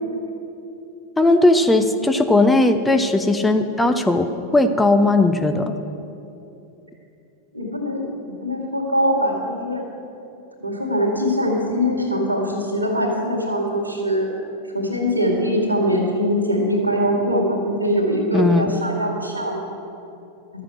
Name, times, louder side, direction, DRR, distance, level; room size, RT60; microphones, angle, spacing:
voice 1, 1.2-5.7 18.3-18.7, left 2 dB, 10° left, 7 dB, 0.7 m, -17 dB
voice 2, 7.5-8.1 8.4-9.8 10.6-14.3 14.7-19.6, equal, 85° right, 1 dB, 2.2 m, -22 dB
12.5 x 7.6 x 7.7 m, 2.8 s
figure-of-eight pair, 90°, 0 cm